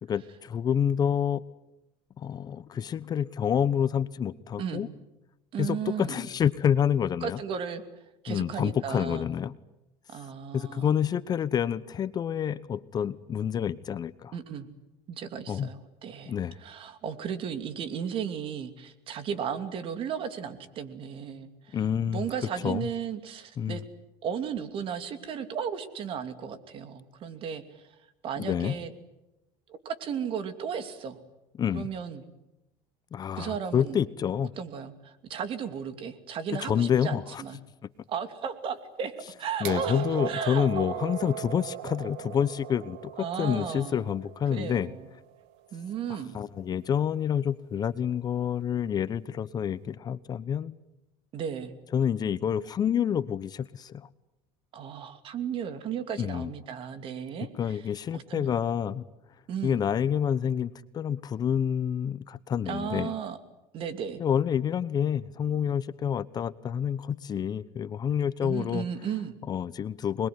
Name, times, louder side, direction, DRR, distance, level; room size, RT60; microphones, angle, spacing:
voice 1, 0.1-1.4 2.2-4.9 5.6-7.4 8.3-9.5 10.5-14.3 15.5-15.7 16.2-16.6 21.7-22.3 22.6-22.9 23.6-23.8 28.4-28.7 31.6-31.9 33.1-34.5 36.6-37.4 39.6-44.9 46.3-50.7 51.9-54.1 56.2-56.5 57.6-59.0 59.6-63.1 64.2-68.9 69.5-70.3, left 8 dB, 35° left, 16 dB, 0.9 m, -28 dB
voice 2, 4.6-4.9 5.5-6.3 7.2-7.8 8.2-9.3 10.1-11.0 14.3-14.7 15.1-21.8 22.1-23.8 24.2-28.0 28.2-28.9 29.7-31.2 31.7-32.2 33.4-34.0 34.6-37.6 38.1-39.1 39.4-41.2 43.2-44.1 44.5-45.1 45.7-46.4 51.3-51.8 54.7-57.8 58.1-58.5 59.5-59.8 62.7-63.4 63.7-64.2 68.4-69.4, right 7 dB, 45° right, 10 dB, 2.8 m, -35 dB
sound 1, 39.6-45.5 46.6-46.7, right 11 dB, 80° right, 1.5 m, -38 dB
26.0 x 21.5 x 9.6 m, 0.95 s
supercardioid pair, 120°, 12 cm